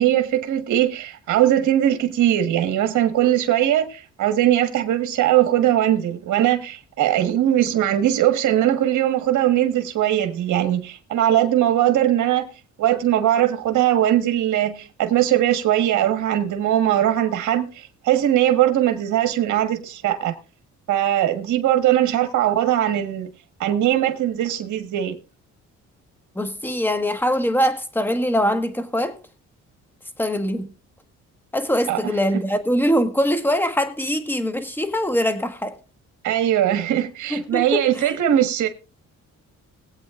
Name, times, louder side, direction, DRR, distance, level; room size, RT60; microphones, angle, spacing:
voice 1, 0.0-12.5 12.8-20.3 20.9-23.3 23.6-25.2 31.9-32.0 36.2-38.7, right 12 dB, 75° right, 1.5 m, -20 dB
voice 2, 26.3-29.2 30.2-30.7 31.5-35.8 37.3-38.2, equal, 5° left, 1.5 m, -23 dB
21.0 x 8.3 x 2.5 m
cardioid pair, 90°, 30 cm